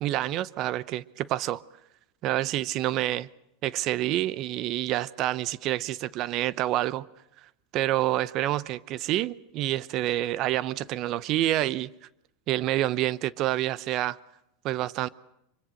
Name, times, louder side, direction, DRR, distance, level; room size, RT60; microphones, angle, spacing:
voice 1, 0.0-1.6 2.2-3.3 3.6-7.1 7.7-11.9 12.5-14.2 14.6-15.1, right 14 dB, 45° right, 0.8 m, -28 dB
25.0 x 24.0 x 6.6 m
supercardioid pair, 125°, 0 cm